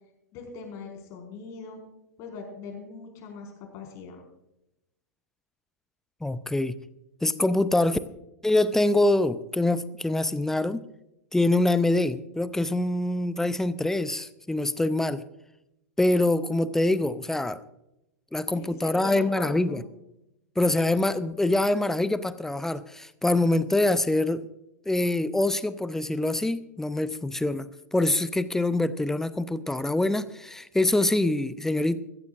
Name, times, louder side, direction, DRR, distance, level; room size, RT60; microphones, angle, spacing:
voice 1, 0.3-1.8 2.2-4.2 18.5-19.8, left 4 dB, 40° left, 2 dB, 5.1 m, -41 dB
voice 2, 6.2-6.8 7.2-8.0 8.4-10.8 11.3-15.2 16.0-17.6 18.3-19.8 20.6-24.4 24.9-32.0, left 2 dB, 5° left, 16 dB, 0.6 m, -25 dB
22.0 x 15.0 x 2.5 m, 0.87 s
figure-of-eight pair, 95°, 9 cm